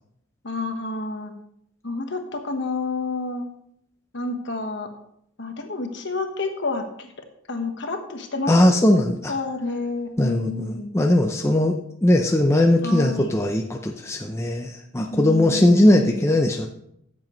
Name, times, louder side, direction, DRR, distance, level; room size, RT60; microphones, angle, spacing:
voice 1, 0.4-1.3 1.8-3.5 4.1-4.9 5.4-7.1 7.5-8.5 9.3-10.9 12.8-13.4 15.1-16.3, left 3 dB, 55° left, 5 dB, 1.3 m, -29 dB
voice 2, 8.5-9.3 10.2-16.7, left 1 dB, 15° left, 2 dB, 0.5 m, -19 dB
14.0 x 7.5 x 3.1 m, 0.72 s
head